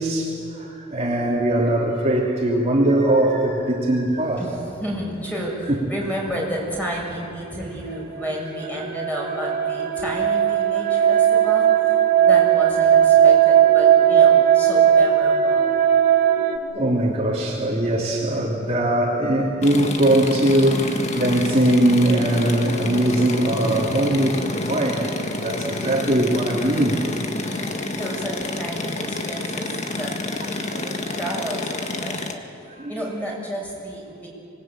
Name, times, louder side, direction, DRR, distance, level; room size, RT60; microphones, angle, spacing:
voice 1, 0.0-4.5 16.5-25.1 25.4-27.0 28.2-28.3 30.6-31.4 32.7-33.1, right 1 dB, 30° right, -3 dB, 2.9 m, -21 dB
voice 2, 4.4-15.8 27.3-30.6 31.1-32.4 32.9-34.3, equal, 10° left, -3 dB, 6.8 m, -31 dB
sound 1, 8.2-16.6, right 9 dB, 50° right, 2.0 m, -17 dB
sound 2, 19.6-32.3, left 2 dB, 35° left, 1.8 m, -29 dB
26.0 x 20.5 x 8.9 m, 2.8 s
head